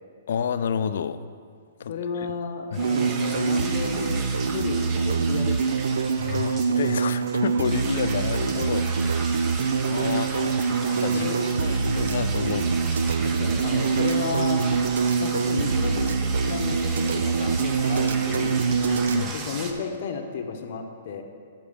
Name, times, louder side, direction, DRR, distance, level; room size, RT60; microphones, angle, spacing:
voice 1, 0.3-1.2 1.8-1.9 2.7-2.9 6.2-9.1 9.8-11.3 11.6-13.1 18.8-19.4, left 7 dB, 65° left, 13 dB, 0.4 m, -30 dB
voice 2, 1.9-5.8 10.0-10.4 11.1-11.4 13.2-14.6 15.2-16.1 16.5-18.6 19.1-21.2, left 6 dB, 45° left, 4 dB, 0.8 m, -33 dB
sound 1, 2.7-19.7, right 4 dB, 20° right, 0.6 m, -36 dB
sound 2, 2.8-19.2, right 5 dB, 90° right, 0.3 m, -24 dB
8.3 x 5.9 x 5.1 m, 2.2 s
hypercardioid pair, 160°, 0 cm